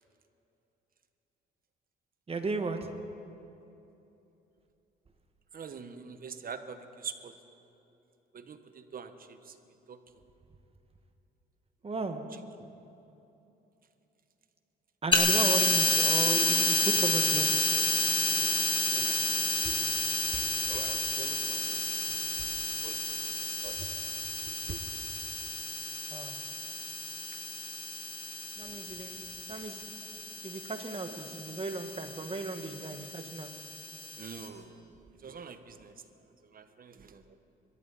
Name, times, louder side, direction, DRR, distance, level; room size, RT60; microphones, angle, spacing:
voice 1, 2.3-2.9 11.8-12.2 15.0-17.5 26.1-26.4 28.6-29.8 30.4-33.5, right 3 dB, 30° right, 6 dB, 1.5 m, -35 dB
voice 2, 5.5-7.3 8.3-9.5 9.9-10.0 18.3-19.9 20.3-21.8 22.8-23.9 24.5-24.8 34.2-35.0 35.2-35.9 36.4-37.4, right 6 dB, 45° right, 9 dB, 1.2 m, -45 dB
sound 1, 15.1-34.5, left 3 dB, 25° left, 2.0 m, -30 dB
25.0 x 13.0 x 4.2 m, 2.9 s
cardioid pair, 90°, 20 cm